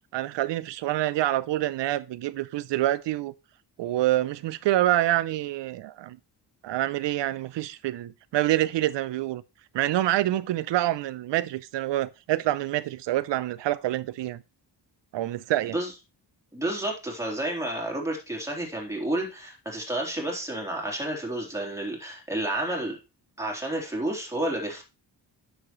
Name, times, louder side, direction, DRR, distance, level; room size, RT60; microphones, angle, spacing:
voice 1, 0.1-3.3 3.8-6.2 6.6-9.4 9.7-14.4 15.1-15.7, right 14 dB, 85° right, 0.5 m, -26 dB
voice 2, 16.5-23.0 23.4-24.8, right 1 dB, 5° right, 3.5 m, -30 dB
9.7 x 7.3 x 3.1 m
cardioid pair, 110°, 42 cm